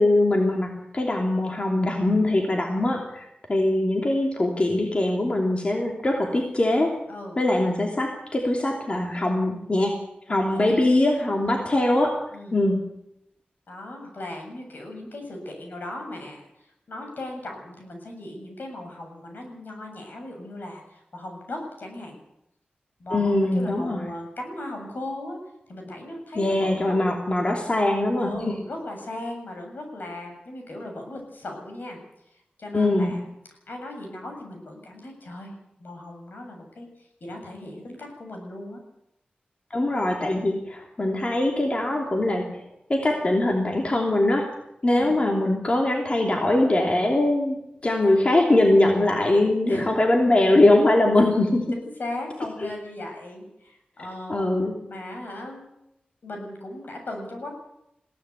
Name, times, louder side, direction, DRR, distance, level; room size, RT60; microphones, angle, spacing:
voice 1, 0.0-3.2 3.5-6.9 7.4-10.0 10.3-12.1 12.5-12.8 23.1-24.0 26.3-28.3 32.7-33.1 39.7-42.5 42.9-44.5 44.8-47.6 47.8-51.6 52.6-52.7 54.3-54.7, left 1 dB, 35° left, 1 dB, 3.0 m, -22 dB
voice 2, 10.3-10.8 11.4-11.7 12.3-12.6 13.7-22.2 23.0-25.4 25.7-27.0 28.2-32.0 32.3-33.2 33.7-35.5 35.8-38.8 44.9-45.2 49.7-49.9 51.7-54.5 54.9-55.7 56.2-57.5, left 1 dB, 75° left, 3 dB, 7.6 m, -37 dB
21.5 x 17.0 x 8.3 m, 0.82 s
wide cardioid pair, 105°, 3 cm